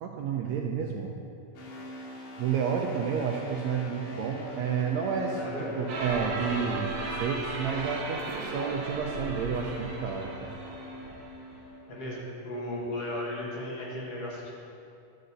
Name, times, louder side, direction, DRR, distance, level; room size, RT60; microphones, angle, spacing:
voice 1, 0.0-1.1 2.4-10.6, right 6 dB, 80° right, 0 dB, 1.7 m, -31 dB
sound 1, 1.6-12.1, left 1 dB, 85° left, 2.9 m, -43 dB
voice 2, 5.3-5.7 11.9-14.5, left 1 dB, 60° left, -4 dB, 2.1 m, -35 dB
sound 2, 5.9-11.6, right 3 dB, 65° right, 2.2 m, -36 dB
11.0 x 4.0 x 6.6 m, 2.5 s
omnidirectional pair, 3.6 m